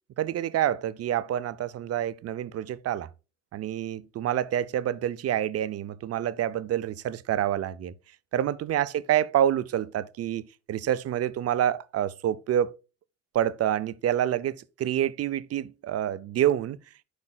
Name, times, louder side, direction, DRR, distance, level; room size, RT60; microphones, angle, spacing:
voice 1, 0.2-3.1 3.5-7.9 8.3-12.7 13.3-16.8, right 11 dB, 55° right, 0.5 m, -27 dB
11.0 x 4.8 x 2.3 m
cardioid pair, 90°, 30 cm